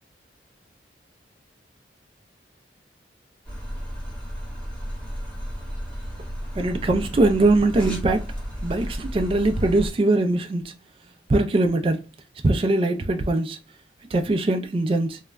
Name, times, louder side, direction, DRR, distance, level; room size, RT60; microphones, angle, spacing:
sound 1, 3.4-9.9, equal, 5° left, 0.9 m, -33 dB
voice 1, 6.5-8.3 8.6-10.7 11.3-12.1 12.4-13.6 14.1-15.2, right 2 dB, 30° right, 0.3 m, -21 dB
2.3 x 2.0 x 3.3 m
head